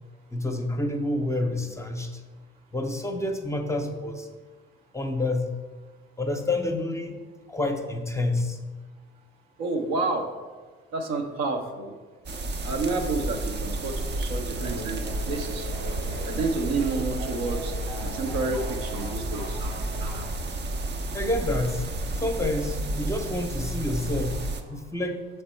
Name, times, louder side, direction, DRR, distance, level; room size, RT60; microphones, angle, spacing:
voice 1, 0.3-2.1 2.7-4.3 4.9-5.5 6.2-7.2 7.5-8.6 21.1-21.8 22.2-24.4 24.7-25.2, left 2 dB, 10° left, 4 dB, 0.7 m, -28 dB
voice 2, 9.6-10.3 10.9-11.9 12.6-15.7 16.2-17.7 18.0-19.6, right 3 dB, 65° right, 4 dB, 0.9 m, -29 dB
sound 1, 12.3-24.6, right 1 dB, 35° right, 0.6 m, -31 dB
sound 2, 14.6-20.3, equal, 80° right, 1.3 m, -39 dB
6.6 x 3.4 x 4.4 m, 1.4 s
hypercardioid pair, 60°, 29 cm